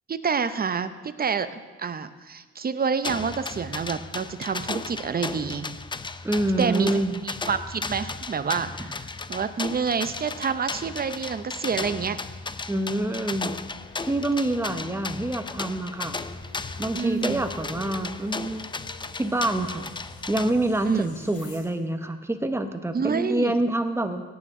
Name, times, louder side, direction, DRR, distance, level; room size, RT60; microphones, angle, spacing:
voice 1, 0.1-5.7 6.6-6.9 7.2-12.2 16.9-17.4 20.8-21.1 22.9-23.5, right 6 dB, 30° right, 11 dB, 0.7 m, -28 dB
sound 1, 3.0-20.5, left 4 dB, 15° left, 0.4 m, -35 dB
voice 2, 6.2-7.2 12.7-13.5 14.0-16.2 16.8-18.7 19.2-19.9 20.3-24.2, right 1 dB, 10° right, 7 dB, 1.0 m, -26 dB
sound 2, 12.9-21.6, left 2 dB, 70° left, 3.3 m, -48 dB
17.0 x 9.2 x 3.7 m, 1.4 s
cardioid pair, 90°, 30 cm